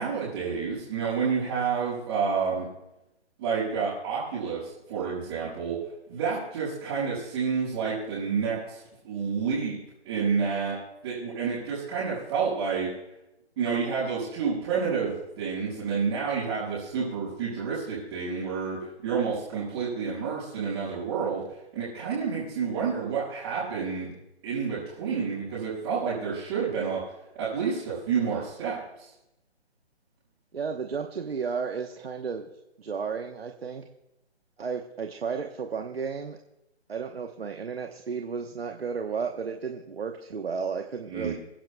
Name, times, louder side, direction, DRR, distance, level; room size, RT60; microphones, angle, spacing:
voice 1, 0.0-2.7 3.4-5.8 6.1-9.8 10.0-10.7 11.0-12.9 13.6-24.1 24.4-27.0 27.3-29.1 41.1-41.3, right 6 dB, 20° right, -11 dB, 5.1 m, -29 dB
voice 2, 30.5-32.5 32.8-33.9 34.6-36.4 36.9-41.3, right 5 dB, 60° right, 4 dB, 1.1 m, -33 dB
27.5 x 10.5 x 2.3 m, 0.90 s
hypercardioid pair, 165°, 34 cm